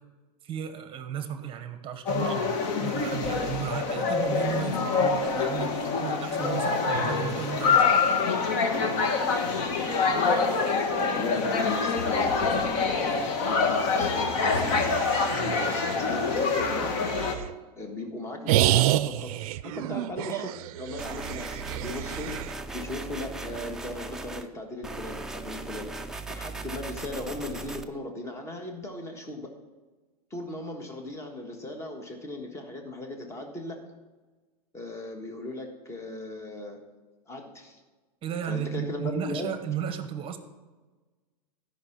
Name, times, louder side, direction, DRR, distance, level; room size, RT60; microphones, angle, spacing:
voice 1, 0.4-8.0 15.3-15.6 38.2-40.4, right 9 dB, 25° right, 9 dB, 1.0 m, -34 dB
sound 1, 2.1-17.3, left 4 dB, 45° left, 1.5 m, -26 dB
voice 2, 9.7-13.1 13.5-14.9 15.4-17.0 17.8-22.4 22.7-29.5 30.3-33.9 34.7-36.8 37.3-37.8 38.4-39.5, left 1 dB, 15° left, 3 dB, 1.4 m, -37 dB
sound 2, 14.4-17.5 18.5-22.5, right 14 dB, 60° right, 0.5 m, -29 dB
sound 3, 21.0-24.5 24.8-27.8, right 2 dB, 5° right, 0.4 m, -38 dB
13.0 x 5.7 x 5.9 m, 1.3 s
supercardioid pair, 135°, 20 cm